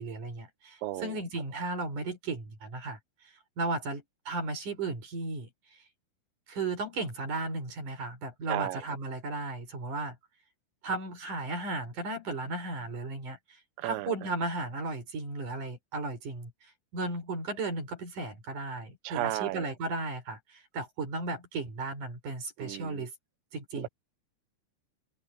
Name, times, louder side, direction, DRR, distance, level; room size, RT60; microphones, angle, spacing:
voice 1, 0.0-3.0 3.6-5.5 6.5-10.2 10.8-23.1 23.5-23.9, right 3 dB, 40° right, 6.1 m, -35 dB
voice 2, 0.8-1.2 8.5-8.8 13.8-14.1 19.0-19.7 22.6-23.1 23.8-23.9, right 16 dB, 75° right, 3.1 m, -34 dB
omnidirectional pair, 5.6 m